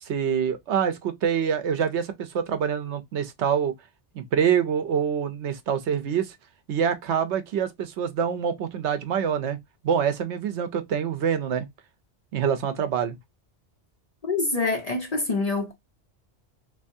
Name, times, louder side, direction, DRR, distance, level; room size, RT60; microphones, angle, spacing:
voice 1, 0.0-3.7 4.1-6.3 6.7-9.6 9.8-11.7 12.3-13.2, right 8 dB, 75° right, 1.0 m, -25 dB
voice 2, 14.2-15.7, left 3 dB, 45° left, 0.6 m, -26 dB
3.4 x 3.0 x 2.6 m
omnidirectional pair, 1.2 m